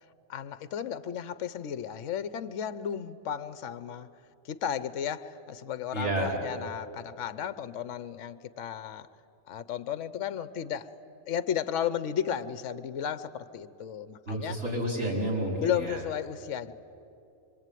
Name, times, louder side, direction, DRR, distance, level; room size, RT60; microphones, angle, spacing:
voice 1, 0.3-4.1 4.4-9.1 9.5-11.0 11.3-14.6 15.6-16.7, left 9 dB, 65° left, 14 dB, 1.1 m, -34 dB
voice 2, 5.9-6.4 14.3-16.0, right 1 dB, 55° right, -2 dB, 6.0 m, -30 dB
25.5 x 25.0 x 9.3 m, 2.8 s
omnidirectional pair, 1.4 m